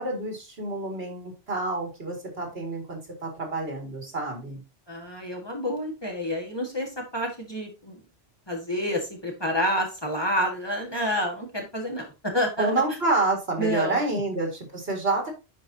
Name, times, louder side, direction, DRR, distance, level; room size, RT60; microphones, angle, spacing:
voice 1, 0.0-4.6 12.6-15.3, right 2 dB, 70° right, 2 dB, 2.4 m, -28 dB
voice 2, 4.9-8.0 8.5-12.8 13.6-14.0, equal, 25° left, 0 dB, 1.7 m, -29 dB
10.0 x 4.6 x 2.7 m, 0.27 s
omnidirectional pair, 1.1 m